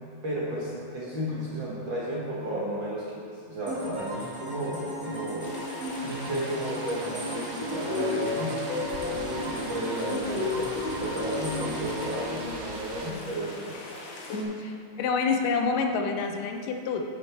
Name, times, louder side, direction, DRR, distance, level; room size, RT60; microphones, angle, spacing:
voice 1, 0.2-5.5 6.0-8.7 9.0-13.8, right 1 dB, 55° right, -7 dB, 1.4 m, -33 dB
sound 1, 3.7-13.4, right 1 dB, 35° right, 2.9 m, -37 dB
sound 2, 5.4-14.4, left 4 dB, 65° left, 2.1 m, -35 dB
sound 3, 6.0-13.1, right 5 dB, 80° right, 2.1 m, -43 dB
voice 2, 14.6-17.0, left 5 dB, 85° left, 4 dB, 2.3 m, -27 dB
9.3 x 8.9 x 3.4 m, 2.3 s
omnidirectional pair, 3.7 m